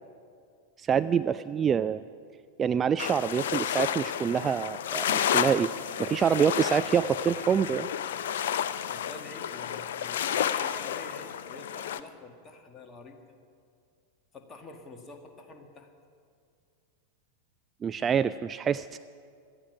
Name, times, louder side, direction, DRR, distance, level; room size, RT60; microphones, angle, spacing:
voice 1, 0.8-2.0 2.6-5.7 6.0-7.9 17.8-19.0, right 7 dB, 20° right, 13 dB, 0.3 m, -26 dB
sound 1, 3.0-12.0, left 9 dB, 60° left, 0.5 m, -31 dB
voice 2, 8.9-13.2 14.3-15.9, left 3 dB, 20° left, 4 dB, 1.8 m, -47 dB
18.0 x 13.0 x 6.1 m, 2.3 s
figure-of-eight pair, 90°, 0 cm